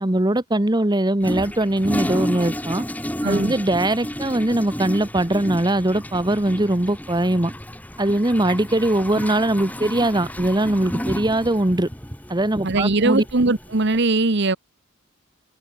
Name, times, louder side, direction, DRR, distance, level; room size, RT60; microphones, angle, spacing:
voice 1, 0.0-2.8 3.2-7.5 8.0-11.9 12.3-13.2, right 1 dB, 20° right, 1.1 m, -21 dB
Toilet flush, 1.2-14.0, equal, 5° left, 5.4 m, -32 dB
voice 2, 3.2-3.5 12.6-14.6, right 3 dB, 55° right, 1.1 m, -20 dB
head